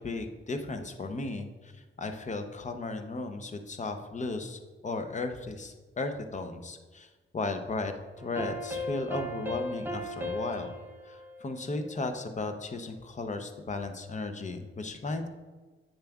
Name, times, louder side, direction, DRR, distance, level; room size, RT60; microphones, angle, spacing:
voice 1, 0.0-10.8 11.1-15.3, left 3 dB, 35° left, 7 dB, 0.6 m, -35 dB
sound 1, 8.2-12.4, left 1 dB, 10° right, 0.7 m, -38 dB
8.0 x 6.9 x 2.3 m, 1.3 s
wide cardioid pair, 115°, 21 cm